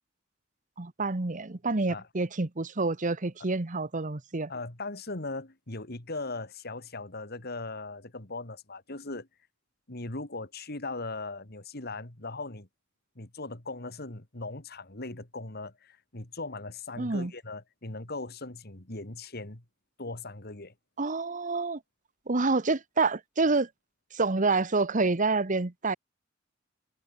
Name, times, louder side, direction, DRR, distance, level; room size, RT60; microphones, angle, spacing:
voice 1, 0.8-4.5 17.0-17.3 21.0-21.8 22.3-23.7 24.1-26.0, right 3 dB, 40° right, 1.1 m, -28 dB
voice 2, 4.5-9.3 9.9-12.7 13.2-19.6 20.0-20.7, left 2 dB, 55° left, 2.7 m, -39 dB
head